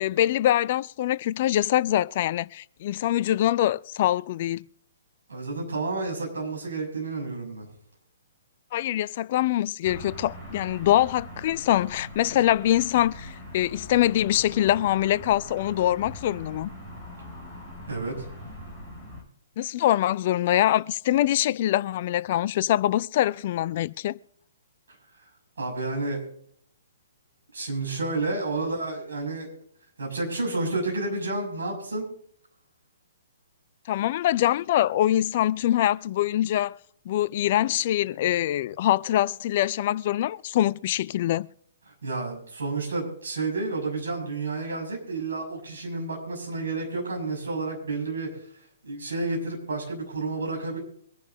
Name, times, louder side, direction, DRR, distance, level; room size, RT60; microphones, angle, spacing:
voice 1, 0.0-4.6 8.7-16.7 19.6-24.2 33.9-36.8 37.1-41.5, left 13 dB, 40° left, 0.4 m, -24 dB
voice 2, 5.3-7.7 17.9-18.2 25.6-26.2 27.5-29.5 30.0-32.0 42.0-48.3 48.8-50.8, right 3 dB, 60° right, 6.4 m, -30 dB
sound 1, 9.8-19.2, equal, 10° right, 6.4 m, -42 dB
24.0 x 10.5 x 2.7 m
figure-of-eight pair, 120°, 0 cm